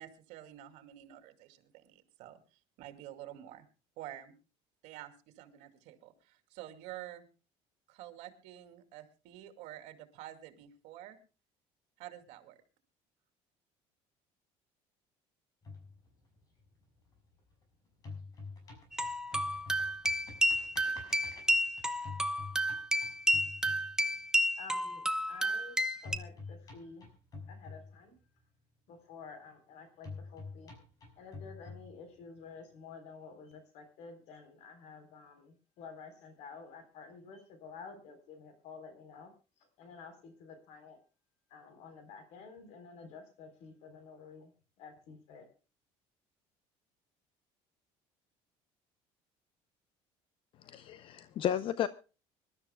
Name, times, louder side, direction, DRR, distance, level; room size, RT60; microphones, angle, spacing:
voice 1, 0.0-2.4 2.8-3.7 4.0-4.3 4.8-7.3 7.9-11.2 12.0-12.6, right 13 dB, 75° right, 8 dB, 2.5 m, -49 dB
sound 1, 15.6-17.6 17.9-24.4 26.0-28.4 30.0-32.4, left 4 dB, 30° left, 5.8 m, -48 dB
sound 2, 18.9-26.2, equal, 5° right, 0.8 m, -31 dB
voice 2, 24.6-27.1 27.5-28.2 28.9-30.7 31.2-41.0 41.5-44.5 44.8-45.5, left 5 dB, 65° left, 9 dB, 3.8 m, -51 dB
voice 3, 50.7-51.9, left 10 dB, 45° left, 14 dB, 0.6 m, -33 dB
25.0 x 12.5 x 2.2 m, 0.33 s
cardioid pair, 150°, 12 cm